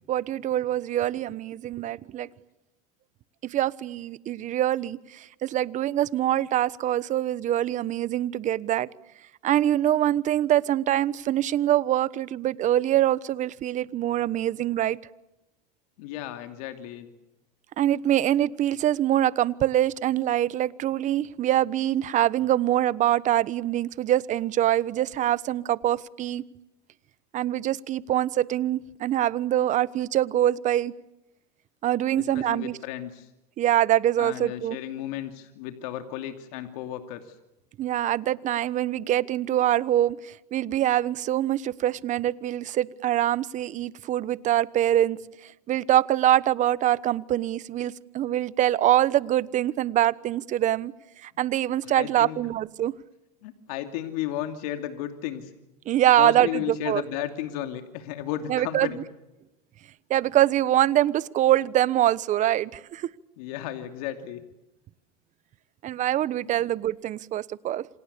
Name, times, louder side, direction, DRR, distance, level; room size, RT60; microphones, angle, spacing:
voice 1, 0.1-2.3 3.4-8.9 9.4-15.0 17.8-26.4 27.3-30.9 31.8-32.8 33.6-34.8 37.8-50.9 51.2-52.9 55.9-57.0 58.5-58.9 60.1-63.1 65.8-67.9, right 12 dB, 40° right, 18 dB, 1.1 m, -24 dB
voice 2, 16.0-17.1 32.3-33.3 34.2-37.3 51.8-52.4 53.4-55.5 56.2-59.0 63.4-64.4 66.4-66.7, left 12 dB, 75° left, 7 dB, 2.8 m, -34 dB
28.0 x 27.0 x 6.9 m, 0.93 s
supercardioid pair, 120°, 20 cm